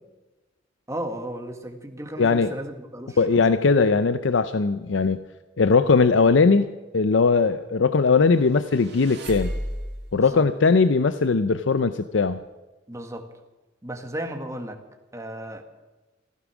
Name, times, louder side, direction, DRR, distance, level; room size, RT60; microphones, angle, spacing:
voice 1, 0.9-3.4 10.1-10.5 12.9-13.3 13.8-14.8 15.1-15.6, right 1 dB, 15° right, 5 dB, 1.6 m, -34 dB
voice 2, 2.2-2.5 3.2-5.2 5.6-9.5 10.1-12.4, left 4 dB, 75° left, 12 dB, 0.6 m, -20 dB
sound 1, 8.4-10.2, equal, 60° right, 2.6 m, -33 dB
15.5 x 15.0 x 6.1 m, 1.1 s
head